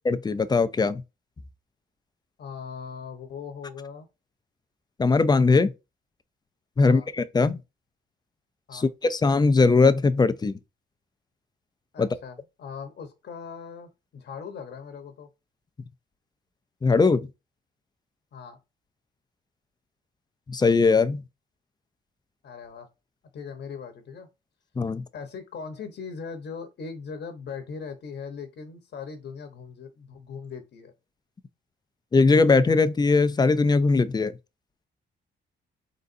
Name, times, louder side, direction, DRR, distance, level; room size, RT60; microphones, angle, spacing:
voice 1, 0.1-1.0 5.0-5.7 6.8-7.6 8.7-10.6 12.0-12.1 16.8-17.3 20.5-21.2 24.8-25.0 32.1-34.3, left 4 dB, 20° left, 0.4 m, -20 dB
voice 2, 2.4-4.1 6.8-7.1 8.7-8.9 11.9-15.3 18.3-18.6 22.4-22.9 23.3-24.3 25.1-30.9, left 6 dB, 60° left, 1.0 m, -39 dB
4.0 x 3.9 x 2.6 m
cardioid pair, 90°, 20 cm